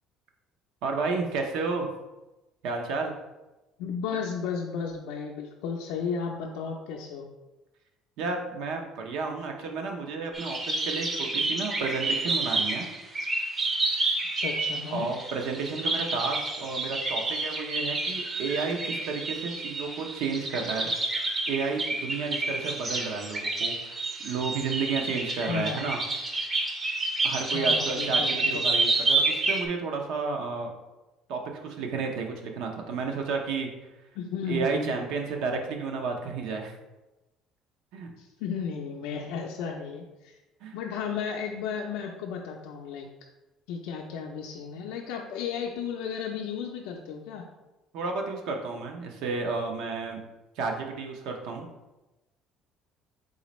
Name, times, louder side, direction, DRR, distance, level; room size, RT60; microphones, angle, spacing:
voice 1, 0.8-1.9 2.6-3.1 8.2-12.9 14.9-20.9 21.5-26.0 27.2-30.7 31.3-33.7 34.5-36.7 37.9-38.1 40.6-40.7 47.9-50.2 50.6-51.7, right 4 dB, 75° right, 3 dB, 0.6 m, -32 dB
voice 2, 3.8-7.2 14.4-15.1 25.5-26.0 27.5-28.7 34.1-35.2 38.2-40.4 40.7-43.1 43.7-47.5, left 6 dB, 90° left, 0 dB, 0.4 m, -34 dB
sound 1, 10.3-29.7, right 2 dB, 20° right, 0.5 m, -29 dB
4.1 x 3.8 x 3.0 m, 1.0 s
cardioid pair, 155°, 0 cm